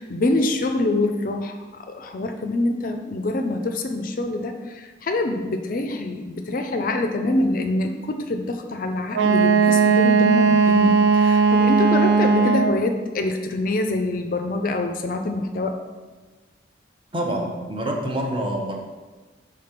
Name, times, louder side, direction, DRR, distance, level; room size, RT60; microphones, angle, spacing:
voice 1, 0.0-15.8, left 2 dB, 45° left, 5 dB, 0.4 m, -25 dB
Wind instrument woodwind instrument, 9.1-12.9, right 5 dB, 75° right, 0.4 m, -17 dB
voice 2, 17.1-18.8, right 1 dB, 25° right, 1 dB, 0.8 m, -26 dB
5.1 x 3.7 x 5.8 m, 1.3 s
head